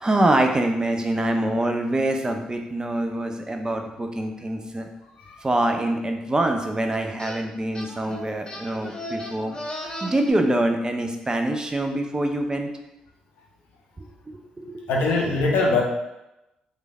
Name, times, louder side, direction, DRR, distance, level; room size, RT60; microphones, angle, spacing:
voice 1, 0.0-4.9 5.4-9.6 10.0-12.7 14.3-14.8, right 1 dB, 25° right, 4 dB, 0.4 m, -25 dB
sound 1, 7.2-7.4 7.7-10.3, left 1 dB, 25° left, 0.5 m, -36 dB
voice 2, 14.9-15.8, left 3 dB, 75° left, -1 dB, 0.5 m, -21 dB
3.1 x 2.2 x 2.2 m, 0.91 s
hypercardioid pair, 45°, 3 cm